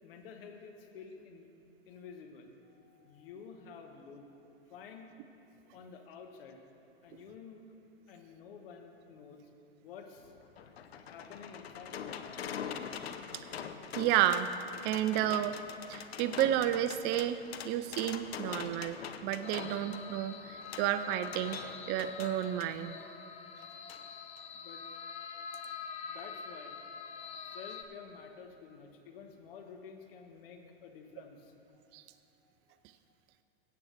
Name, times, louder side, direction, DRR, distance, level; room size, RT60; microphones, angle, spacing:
voice 1, 0.0-1.5 1.9-4.3 4.7-5.1 5.7-6.6 7.0-7.6 8.1-9.4 9.8-10.3 11.1-12.2 24.5-24.8 26.1-26.8 27.5-31.8 32.1-33.1, left 6 dB, 65° left, 4 dB, 1.3 m, -51 dB
sound 1, 10.2-22.7 23.9-24.0 24.4-24.5, left 7 dB, 85° left, 0.7 m, -44 dB
voice 2, 14.0-14.5 14.8-15.6 15.9-17.4 17.6-21.6 21.9-22.9 31.9-32.0, right 12 dB, 35° right, 12 dB, 0.4 m, -31 dB
sound 2, 19.4-27.8, left 6 dB, 20° left, 0.7 m, -45 dB
16.0 x 8.5 x 3.3 m, 2.8 s
hypercardioid pair, 100°, 30 cm